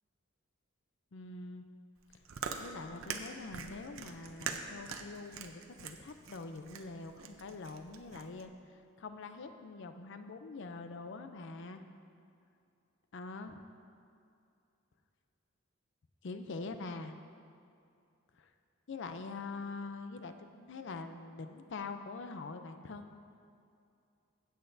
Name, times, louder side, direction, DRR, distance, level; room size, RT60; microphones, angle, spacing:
voice 1, 1.1-1.7 2.1-2.2 2.5-11.8 13.1-13.6 16.2-17.2 18.3-18.5 18.9-23.2, left 3 dB, 60° left, 8 dB, 0.5 m, -44 dB
Chewing mastication, 2.0-8.4, right 6 dB, 85° right, 0.6 m, -43 dB
15.5 x 8.0 x 2.6 m, 2.5 s
head